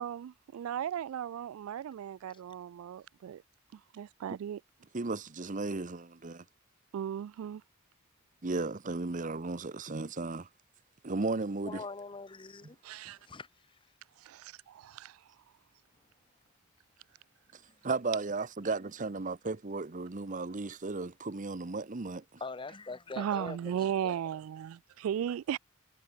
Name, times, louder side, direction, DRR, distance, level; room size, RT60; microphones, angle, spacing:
voice 1, 0.0-3.4 3.7-4.6 6.9-7.6 12.8-13.2 14.2-15.2 23.2-25.6, right 9 dB, 85° right, 0.3 m, -36 dB
voice 2, 4.9-6.4 8.4-10.5 11.0-11.8 17.8-22.4, right 3 dB, 40° right, 0.8 m, -35 dB
voice 3, 11.6-12.8 13.0-13.8 22.4-24.2, left 3 dB, 25° left, 0.7 m, -43 dB
head